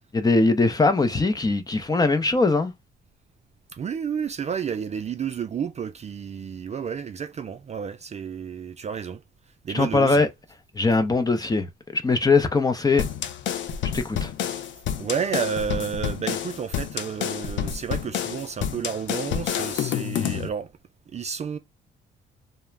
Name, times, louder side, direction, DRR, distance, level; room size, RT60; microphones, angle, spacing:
voice 1, 0.1-2.7 9.7-10.3 10.7-13.0 13.8-14.3, left 3 dB, 20° left, 0.6 m, -21 dB
voice 2, 3.7-10.3 13.8-13.9 15.0-20.7 21.1-21.6, right 7 dB, 35° right, 0.3 m, -31 dB
sound 1, 13.0-20.5, left 9 dB, 70° left, 0.5 m, -29 dB
2.4 x 2.0 x 3.1 m
cardioid pair, 90°, 20 cm